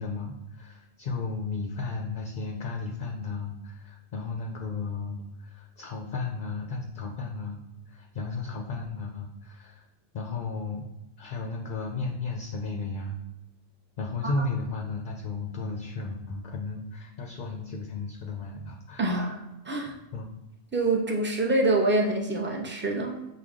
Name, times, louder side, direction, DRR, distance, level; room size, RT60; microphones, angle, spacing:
voice 1, 0.0-9.8 10.1-10.9 11.2-13.2 14.0-19.1 20.1-20.3, left 3 dB, 55° left, 1 dB, 0.6 m, -34 dB
voice 2, 19.0-19.9 20.7-23.3, right 2 dB, 15° right, -1 dB, 0.5 m, -26 dB
6.3 x 2.2 x 3.6 m, 0.95 s
omnidirectional pair, 1.2 m